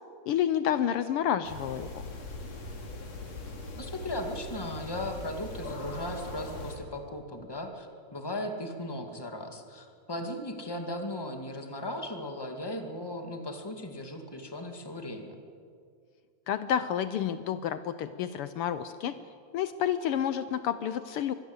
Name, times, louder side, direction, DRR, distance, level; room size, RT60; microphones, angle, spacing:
voice 1, 0.3-2.0 16.5-19.1 19.5-21.3, left 9 dB, 90° left, 12 dB, 1.2 m, -29 dB
sound 1, 1.4-6.8, left 2 dB, 60° left, 4.2 m, -40 dB
voice 2, 3.8-15.4, left 1 dB, 10° left, 4 dB, 1.8 m, -37 dB
25.0 x 20.5 x 8.1 m, 2.3 s
omnidirectional pair, 3.5 m